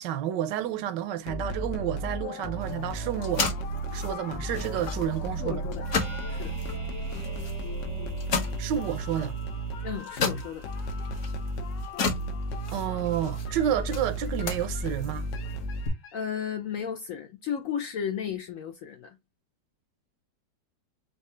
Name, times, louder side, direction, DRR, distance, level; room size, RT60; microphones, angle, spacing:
voice 1, 0.0-3.5 3.9-5.6 8.6-9.4 12.7-15.3, right 10 dB, 80° right, 1.2 m, -30 dB
sound 1, 1.3-16.2, right 1 dB, 85° left, 1.5 m, -34 dB
sound 2, 2.6-15.9, left 4 dB, 50° left, 1.2 m, -36 dB
voice 2, 5.4-5.9 6.3-6.6 9.8-10.7 16.1-19.2, left 8 dB, 70° left, 0.8 m, -34 dB
sound 3, 5.9-15.9 16.2-16.3, right 1 dB, 20° right, 0.4 m, -54 dB
4.7 x 2.8 x 3.1 m
omnidirectional pair, 1.9 m